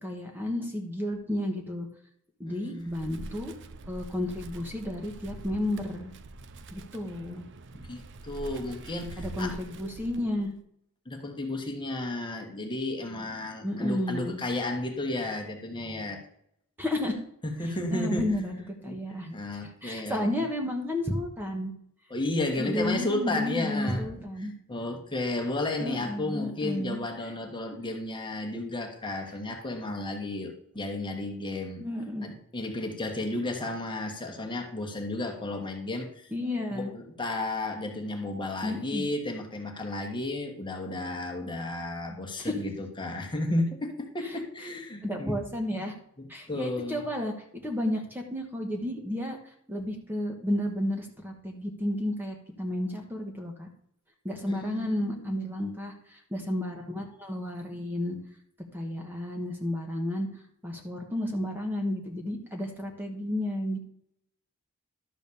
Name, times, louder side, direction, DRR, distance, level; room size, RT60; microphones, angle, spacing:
voice 1, 0.0-1.9 2.4-3.5 3.9-6.1 6.7-7.4 9.2-10.5 13.6-14.4 16.8-17.2 17.9-19.4 19.8-21.7 22.6-24.5 25.8-27.0 27.2-27.3 31.8-32.3 36.3-36.9 38.6-39.0 42.4-42.6 44.2-44.3 45.0-45.9 46.3-53.7 54.2-58.2 58.7-63.8, left 1 dB, 10° right, 2 dB, 1.2 m, -32 dB
voice 2, 2.4-3.4 7.2-7.5 7.7-9.5 11.0-16.2 17.4-18.4 18.9-19.0 19.3-20.3 22.1-24.2 24.7-31.9 32.2-36.3 36.7-45.4 46.2-47.0 54.5-55.5, left 2 dB, 20° left, 3 dB, 1.4 m, -33 dB
Wind, 2.8-10.5, right 2 dB, 55° right, 0.6 m, -44 dB
12.0 x 4.1 x 6.9 m, 0.71 s
head